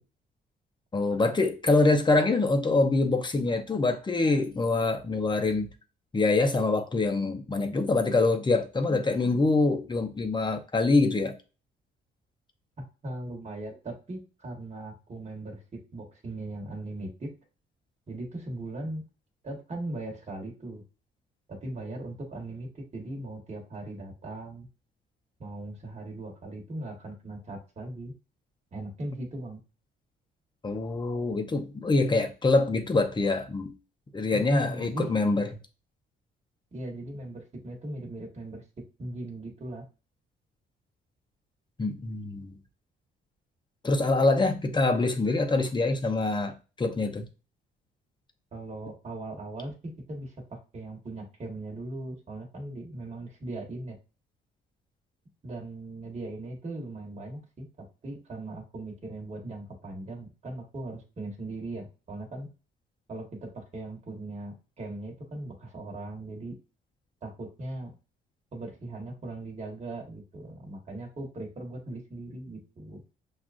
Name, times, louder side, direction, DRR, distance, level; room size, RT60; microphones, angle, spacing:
voice 1, 0.9-5.7 6.1-11.3 30.6-33.7 34.1-35.5 41.8-42.6 43.8-47.2, left 3 dB, 25° left, 0.7 m, -25 dB
voice 2, 13.0-15.6 15.9-17.3 18.1-19.0 19.4-20.8 21.5-24.7 25.4-28.1 28.7-29.6 34.3-35.1 36.7-38.6 39.0-39.8 48.5-54.0 55.4-57.7 58.0-62.5 63.1-66.5 67.2-67.9 68.5-73.0, right 2 dB, 35° right, 1.4 m, -39 dB
5.9 x 2.4 x 2.5 m
cardioid pair, 90°, 20 cm